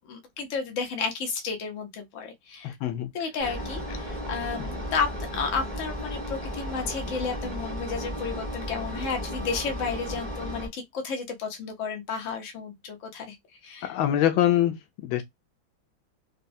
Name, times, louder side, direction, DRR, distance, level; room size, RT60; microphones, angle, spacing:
voice 1, 0.1-2.7 3.1-13.4 13.6-14.0, left 5 dB, 50° left, 1.1 m, -32 dB
voice 2, 2.6-3.1 13.8-14.8 15.0-15.2, left 12 dB, 80° left, 1.3 m, -23 dB
Engine, 3.4-10.7, equal, 30° right, 0.9 m, -34 dB
4.1 x 2.3 x 2.6 m
omnidirectional pair, 2.2 m